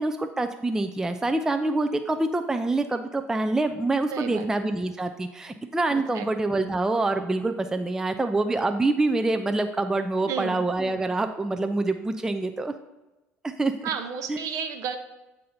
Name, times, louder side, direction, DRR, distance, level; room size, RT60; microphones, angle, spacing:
voice 1, 0.0-12.7 13.4-13.9 14.3-14.4, right 2 dB, 10° right, 6 dB, 0.3 m, -26 dB
voice 2, 4.1-4.5 5.9-6.3 10.2-10.6 13.8-15.0, right 7 dB, 50° right, 7 dB, 0.7 m, -32 dB
7.5 x 2.6 x 5.4 m, 1.0 s
figure-of-eight pair, 60°, 7 cm